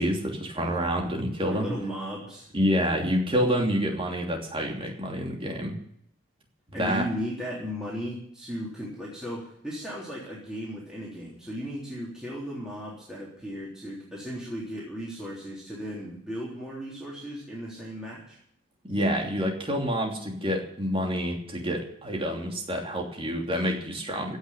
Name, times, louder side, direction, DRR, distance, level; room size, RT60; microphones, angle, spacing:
voice 1, 0.0-1.7 2.5-5.8 6.8-7.1 18.8-24.4, equal, 25° right, 1 dB, 2.9 m, -28 dB
voice 2, 0.5-0.9 1.5-2.5 6.7-18.4, equal, 5° right, -6 dB, 3.6 m, -36 dB
16.0 x 6.6 x 10.0 m, 0.69 s
head